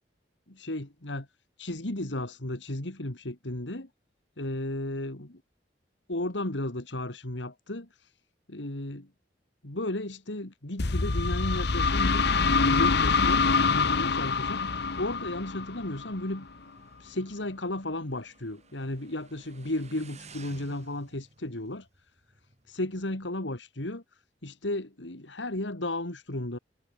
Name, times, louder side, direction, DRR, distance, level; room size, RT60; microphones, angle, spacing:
voice 1, 0.5-1.3 1.6-3.9 4.4-5.4 6.1-8.1 8.5-9.1 9.6-16.5 17.0-21.9 22.7-26.6, left 1 dB, 85° left, 2.8 m, -34 dB
sound 1, 10.8-16.4, left 4 dB, 65° left, 1.1 m, -25 dB
Motorcycle, 14.7-23.0, right 3 dB, 40° right, 5.9 m, -56 dB
head